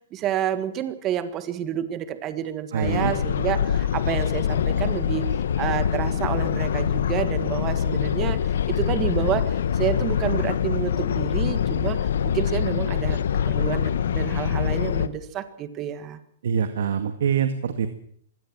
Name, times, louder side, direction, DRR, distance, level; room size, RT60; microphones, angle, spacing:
voice 1, 0.1-5.2 5.6-8.4 8.7-12.1 12.3-16.2, right 10 dB, 25° right, 12 dB, 1.6 m, -29 dB
voice 2, 2.7-3.1 16.4-17.9, right 7 dB, 75° right, 9 dB, 1.9 m, -24 dB
sound 1, 2.8-15.1, left 8 dB, 80° left, 1.3 m, -24 dB
23.0 x 16.5 x 7.5 m, 0.63 s
hypercardioid pair, 160°, 0 cm